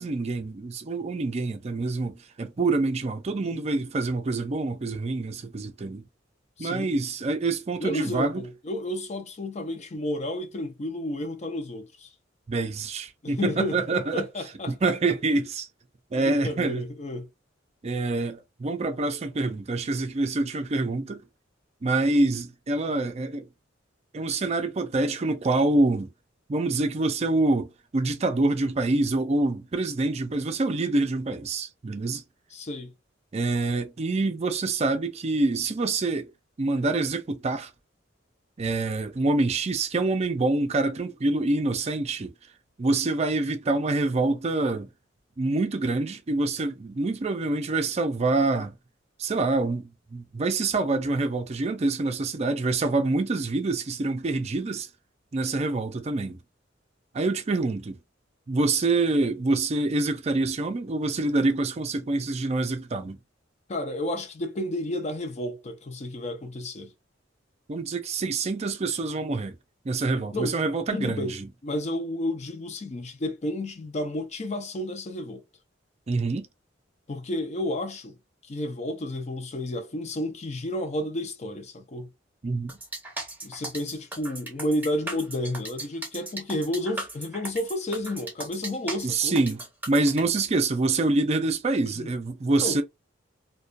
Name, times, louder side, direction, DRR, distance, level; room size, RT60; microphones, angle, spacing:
voice 1, 0.0-6.0 6.6-8.4 12.5-14.2 14.7-15.7 16.1-16.9 17.8-21.2 21.8-23.5 24.1-26.1 26.5-32.2 33.3-36.3 36.6-37.7 38.6-42.3 42.8-44.9 45.4-48.8 49.2-49.8 50.1-54.9 55.3-56.4 57.1-58.0 58.5-63.2 67.7-69.6 69.9-71.5 76.1-76.5 82.4-82.7 89.0-89.6 89.9-92.8, right 2 dB, 35° right, 0.4 m, -26 dB
voice 2, 6.6-6.9 7.8-12.1 13.2-14.9 16.1-17.3 32.5-32.9 63.7-66.9 70.3-70.6 70.9-71.3 71.6-75.4 77.1-78.1 78.4-82.1 83.4-89.4 92.0-92.1 92.6-92.8, left 1 dB, 35° left, 0.5 m, -31 dB
sound 1, 82.7-90.2, right 1 dB, 10° right, 0.8 m, -37 dB
2.2 x 2.2 x 2.5 m
head